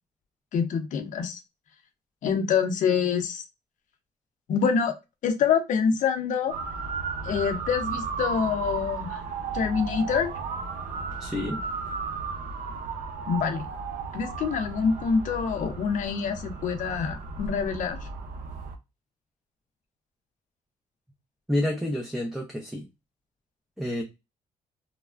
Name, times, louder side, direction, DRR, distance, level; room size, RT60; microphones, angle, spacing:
voice 1, 0.5-1.4 2.2-3.4 4.5-4.9 5.2-6.5 7.2-9.2 9.5-10.3 13.3-13.7 14.1-18.0, left 6 dB, 65° left, 7 dB, 0.6 m, -26 dB
Motor vehicle (road) / Siren, 6.5-18.8, right 4 dB, 75° right, 0.5 m, -34 dB
voice 2, 11.2-11.6 21.5-22.9 23.8-24.0, left 1 dB, 5° right, 0 dB, 0.4 m, -29 dB
3.2 x 2.0 x 2.3 m, 0.23 s
cardioid pair, 140°, 14 cm